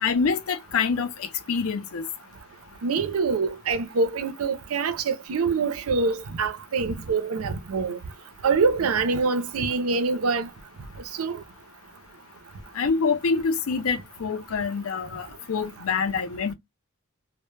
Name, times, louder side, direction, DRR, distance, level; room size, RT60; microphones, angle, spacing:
voice 1, 0.0-2.1 12.7-16.5, left 5 dB, 70° left, 0.5 m, -26 dB
voice 2, 2.8-8.0 8.4-10.5 11.2-11.4, right 4 dB, 90° right, 0.5 m, -25 dB
2.1 x 2.0 x 3.1 m
head